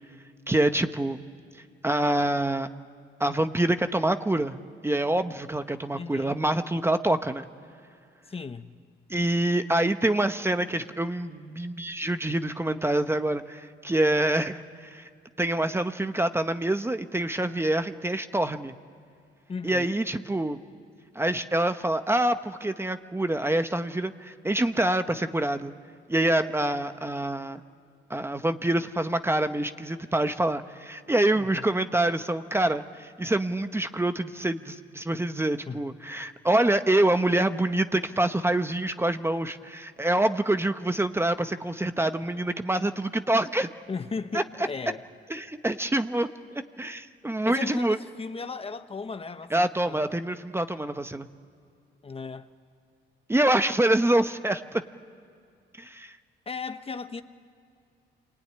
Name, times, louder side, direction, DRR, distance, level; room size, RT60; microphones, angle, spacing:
voice 1, 0.5-1.2 1.8-2.7 3.2-7.5 9.1-15.1 15.4-18.7 19.6-20.6 21.1-25.7 26.1-27.6 28.1-43.7 44.3-44.4 45.3-48.0 49.5-51.3 53.3-54.8 55.8-56.2, right 1 dB, 10° right, 1.0 m, -26 dB
voice 2, 5.9-6.4 8.3-8.7 19.5-19.9 31.4-31.6 35.7-35.8 43.9-45.1 47.4-50.0 52.0-52.5 56.5-57.2, left 4 dB, 30° left, 1.2 m, -36 dB
26.0 x 22.0 x 9.9 m
cardioid pair, 90°, 20 cm